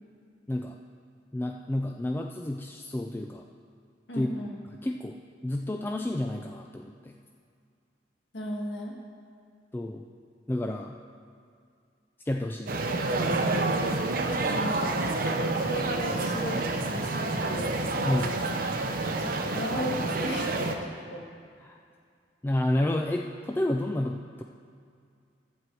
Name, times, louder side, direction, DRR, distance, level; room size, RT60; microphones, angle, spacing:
voice 1, 1.3-3.5 4.1-4.3 4.8-5.2 5.4-7.2 9.7-10.0 10.5-11.0 12.3-12.9 18.0-18.3 21.6-21.8 22.4-24.4, left 1 dB, 10° left, 2 dB, 0.3 m, -30 dB
voice 2, 4.1-4.6 8.3-9.0 14.5-15.0 15.6-17.8 18.1-18.5 19.2-21.3, equal, 85° left, 0 dB, 1.5 m, -36 dB
sound 1, 12.7-20.8, right 2 dB, 55° right, 0.7 m, -28 dB
12.0 x 4.5 x 7.7 m, 2.3 s
head